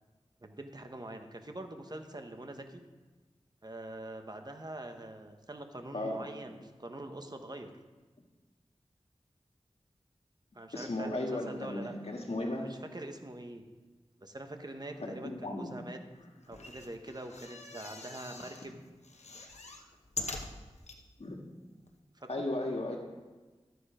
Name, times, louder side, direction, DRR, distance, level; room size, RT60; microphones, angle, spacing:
voice 1, 0.4-2.8 3.6-7.7 10.5-11.9 12.6-13.6 14.2-16.0 16.5-18.8 22.1-22.5, right 1 dB, 35° right, 5 dB, 1.1 m, -44 dB
voice 2, 10.7-12.7 15.0-15.7 21.2-21.4 22.3-23.0, left 1 dB, 65° left, 1 dB, 1.8 m, -35 dB
sound 1, 16.4-18.7 19.0-21.0 21.6-21.7 21.9-22.0, left 3 dB, 85° left, 1.0 m, -43 dB
12.5 x 7.9 x 4.9 m, 1.3 s
wide cardioid pair, 65°, 11 cm